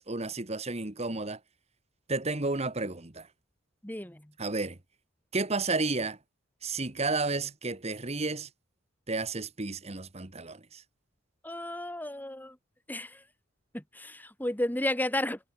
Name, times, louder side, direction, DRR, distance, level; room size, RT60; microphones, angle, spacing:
voice 1, 0.0-1.4 2.1-3.3 4.4-4.8 5.3-6.2 6.6-8.5 9.1-10.8, right 3 dB, 35° right, 1.6 m, -32 dB
voice 2, 3.8-4.3 11.4-12.6 12.9-13.2 13.7-15.4, left 1 dB, 10° left, 1.6 m, -33 dB
head